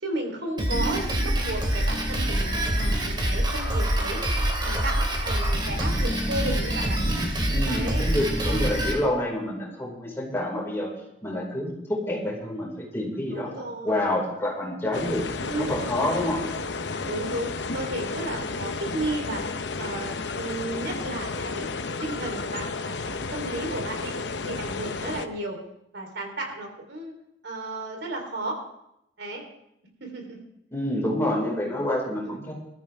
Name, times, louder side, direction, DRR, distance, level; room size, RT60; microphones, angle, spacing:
voice 1, 0.0-4.2 4.6-7.0 7.7-8.1 8.4-8.7 13.3-14.2 15.4-16.5 17.1-19.5 19.8-21.7 22.0-24.1 24.4-25.6 25.9-27.1 27.4-28.6 29.2-29.4 30.0-30.4 32.2-32.4, right 2 dB, 70° right, 2 dB, 3.8 m, -34 dB
Drum kit, 0.6-8.9, right 1 dB, 25° right, 2.8 m, -25 dB
voice 2, 7.5-10.9 11.2-13.5 13.8-15.2 15.6-16.4 30.7-32.5, left 1 dB, 15° left, -3 dB, 5.1 m, -28 dB
sound 1, 14.9-25.3, left 4 dB, 70° left, 0.8 m, -32 dB
21.0 x 14.0 x 3.6 m, 0.81 s
head